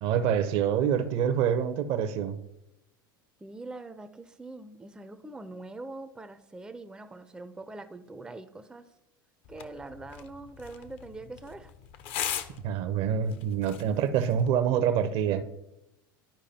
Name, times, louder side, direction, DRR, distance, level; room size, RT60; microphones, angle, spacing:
voice 1, 0.0-2.4 12.6-15.4, right 8 dB, 55° right, 12 dB, 0.6 m, -26 dB
voice 2, 3.4-8.9 9.5-11.7, right 2 dB, 5° right, 9 dB, 0.4 m, -43 dB
sound 1, 9.4-14.5, left 10 dB, 50° left, 0.6 m, -40 dB
11.5 x 4.8 x 2.8 m, 0.89 s
hypercardioid pair, 85°, 12 cm